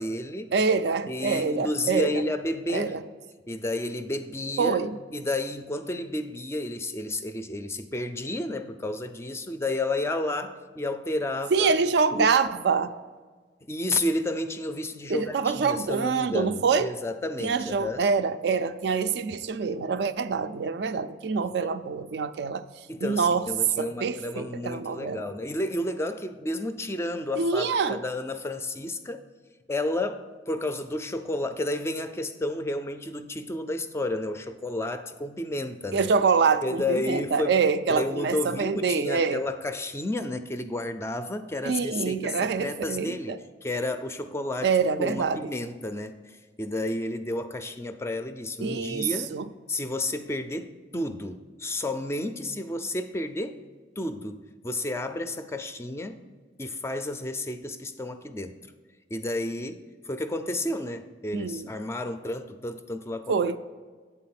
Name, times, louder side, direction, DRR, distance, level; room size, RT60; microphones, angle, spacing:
voice 1, 0.0-0.5 1.1-3.0 3.5-4.8 5.1-11.7 12.1-12.4 13.7-18.1 22.9-29.3 29.7-36.1 36.6-37.5 37.9-49.3 49.7-53.6 54.0-56.2 56.6-58.6 59.1-63.4, left 1 dB, 15° left, 0.3 m, -31 dB
voice 2, 0.5-2.2 2.7-3.0 4.6-4.9 11.5-12.9 15.1-16.9 17.4-22.6 23.0-23.4 23.8-25.3 27.4-28.0 35.9-39.4 41.6-43.4 44.6-45.4 48.6-49.4 61.3-61.7 63.3-63.6, right 5 dB, 70° right, 0.4 m, -25 dB
8.6 x 4.1 x 5.8 m
head